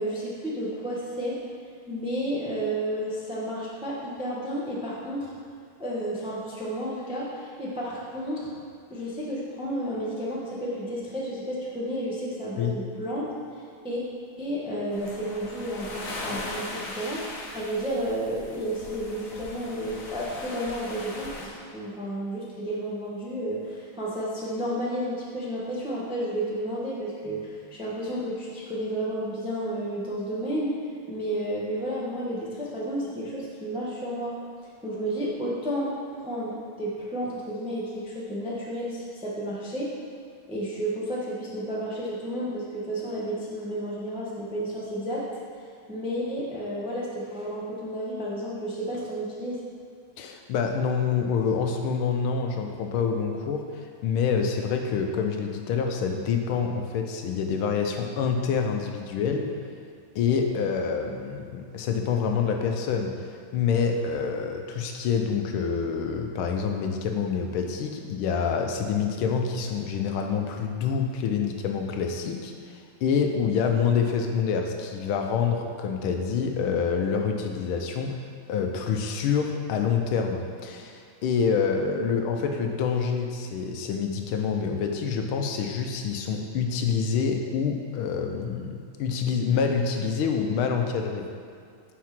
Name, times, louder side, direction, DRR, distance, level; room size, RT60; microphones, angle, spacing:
voice 1, 0.0-1.4 1.9-5.3 5.8-8.5 8.9-13.3 13.8-14.0 14.4-17.2 17.5-30.7 31.1-34.4 34.8-35.9 36.2-39.9 40.5-45.3 45.9-49.6, right 1 dB, 5° right, -5 dB, 0.5 m, -31 dB
sound 1, 14.9-21.5, left 2 dB, 50° left, 1.1 m, -39 dB
voice 2, 50.2-59.5 60.1-78.2 78.5-91.3, left 6 dB, 80° left, 4 dB, 1.5 m, -27 dB
6.5 x 4.6 x 5.8 m, 2.3 s
omnidirectional pair, 2.3 m